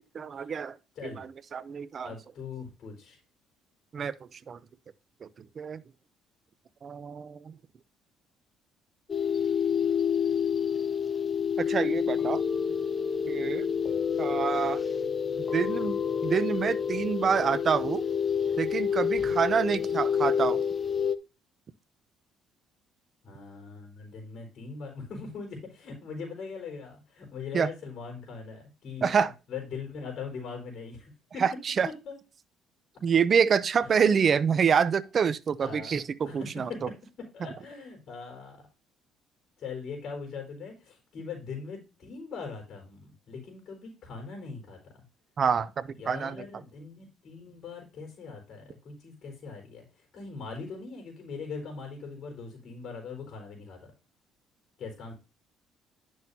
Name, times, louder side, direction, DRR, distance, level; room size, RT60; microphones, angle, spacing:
voice 1, 0.1-0.8 1.0-2.1 3.9-4.6 5.2-5.3 5.6-5.8 6.8-7.6 11.6-12.4 13.3-13.7 14.2-14.8 15.5-18.0 18.6-20.6 27.5-27.7 29.0-29.3 31.4-31.9 33.0-36.7 45.4-46.5, right 6 dB, 40° right, 0.6 m, -27 dB
voice 2, 2.0-3.2 23.2-29.2 29.5-31.4 32.1-32.2 33.8-34.3 35.6-36.8 37.2-38.7 39.6-45.0 46.0-53.8 54.8-55.1, left 5 dB, 55° left, 4.1 m, -41 dB
sound 1, 9.1-21.2, left 7 dB, 30° left, 0.6 m, -28 dB
10.5 x 6.2 x 2.7 m
cardioid pair, 105°, 0 cm